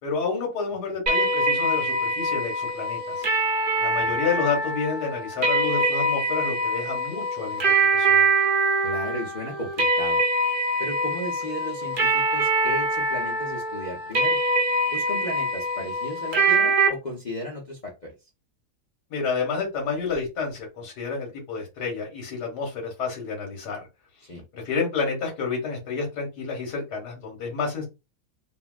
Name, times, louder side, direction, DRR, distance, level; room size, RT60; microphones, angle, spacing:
voice 1, 0.0-3.3 3.8-7.6 7.9-8.3 19.1-23.8 24.5-27.9, left 5 dB, 85° left, 0 dB, 1.8 m, -29 dB
sound 1, 1.1-16.9, right 2 dB, 45° right, 0.7 m, -24 dB
voice 2, 8.8-10.2 10.8-14.4 14.9-18.1 24.3-24.4, equal, 45° left, -2 dB, 0.6 m, -35 dB
3.5 x 2.2 x 2.4 m, 0.25 s
omnidirectional pair, 1.7 m